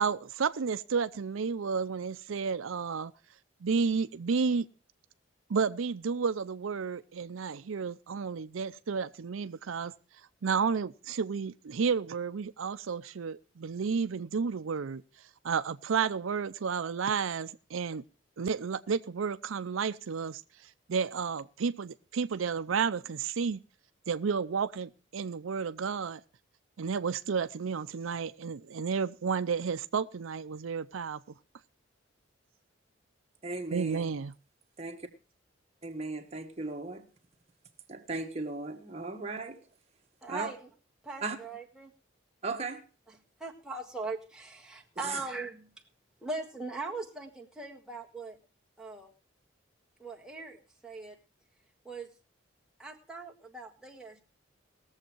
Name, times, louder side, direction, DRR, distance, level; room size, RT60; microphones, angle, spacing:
voice 1, 0.0-3.1 3.6-4.7 5.5-9.9 10.4-15.0 15.4-18.0 18.4-23.6 24.1-26.2 26.8-31.2 33.7-34.3, right 5 dB, 85° right, 0.5 m, -31 dB
voice 2, 33.4-34.1 34.8-35.1 35.8-37.1 37.9-39.6 40.3-40.5 41.2-41.4 42.4-42.8 45.0-45.2, right 3 dB, 30° right, 1.5 m, -37 dB
voice 3, 40.2-40.7 41.0-41.9 43.1-45.7 46.2-48.4 48.8-49.1 50.0-51.2 51.8-52.1 52.8-54.2, right 3 dB, 5° right, 1.6 m, -40 dB
19.5 x 7.3 x 4.5 m
head